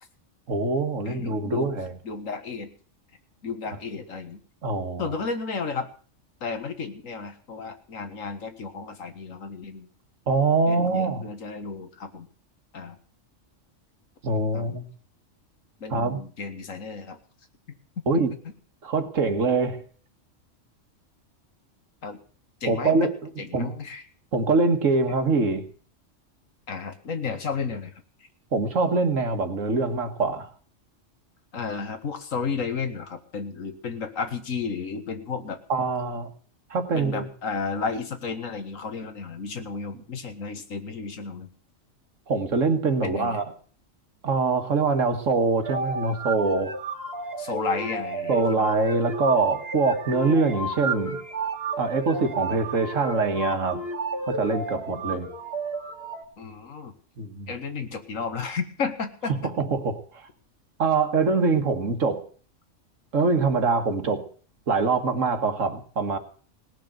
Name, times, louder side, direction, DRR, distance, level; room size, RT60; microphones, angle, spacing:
voice 1, 0.5-1.9 4.6-5.1 10.3-11.2 14.2-14.9 15.9-16.2 18.1-18.3 18.8-19.8 22.7-23.1 23.5-23.8 24.3-25.7 28.5-30.5 35.7-36.3 36.7-37.3 42.3-43.4 44.2-46.7 48.3-51.2 51.8-53.8 54.3-55.3 57.2-57.5 59.6-60.3 60.8-62.3 63.1-64.3 64.7-66.2, right 4 dB, 75° right, 7 dB, 1.9 m, -24 dB
voice 2, 1.0-1.7 2.0-2.7 3.4-4.4 5.0-5.9 6.4-9.9 10.6-12.3 12.7-13.0 14.5-14.8 15.8-17.2 22.0-22.2 22.6-23.1 23.4-24.0 26.7-27.9 31.5-35.6 36.9-41.5 43.0-43.4 47.4-48.7 56.4-56.9 57.5-59.5, left 5 dB, 90° left, 8 dB, 1.9 m, -33 dB
sound 1, 45.6-56.2, right 3 dB, 50° right, 1.9 m, -31 dB
18.0 x 6.6 x 9.0 m, 0.44 s
omnidirectional pair, 1.3 m